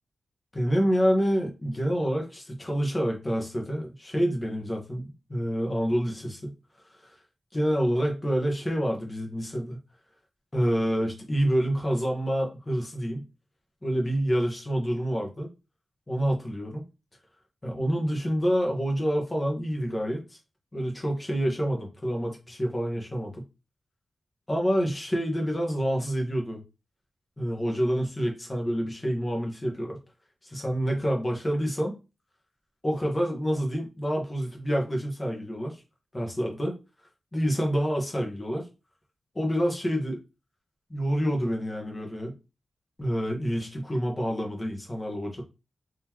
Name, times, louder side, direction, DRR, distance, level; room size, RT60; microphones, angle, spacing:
voice 1, 0.5-6.5 7.0-7.1 7.5-9.8 10.5-13.2 13.8-15.5 16.1-16.8 17.6-20.4 20.7-23.4 24.5-26.6 27.4-30.0 30.4-31.9 32.8-35.8 36.1-36.8 37.3-38.6 39.3-40.2 40.9-42.3 43.0-45.4, equal, 25° left, 0 dB, 1.3 m, -27 dB
3.8 x 3.1 x 3.0 m, 0.28 s
wide cardioid pair, 95°, 0 cm